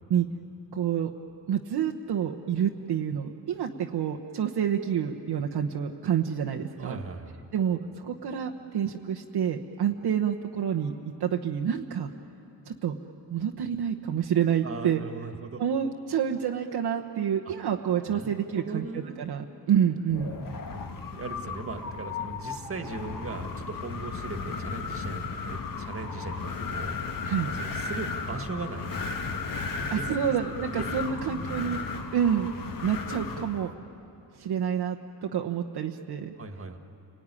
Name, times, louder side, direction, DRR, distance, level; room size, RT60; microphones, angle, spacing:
voice 1, 0.7-1.1 1.5-7.0 7.5-10.9 11.2-12.1 12.7-13.0 13.3-15.0 15.6-20.3 27.2-27.5 29.9-31.8 32.1-32.5 32.8-33.7 34.4-36.3, right 8 dB, 60° right, 2 dB, 1.1 m, -28 dB
voice 2, 6.8-7.5 14.6-15.6 18.1-19.3 19.9-20.6 21.1-27.0 27.5-29.5 29.9-30.4 30.6-31.7 36.4-36.8, right 4 dB, 30° right, 6 dB, 1.9 m, -39 dB
Wind, 20.1-33.7, left 4 dB, 45° left, 1.6 m, -35 dB
30.0 x 19.5 x 9.9 m, 3.0 s
cardioid pair, 135°, 44 cm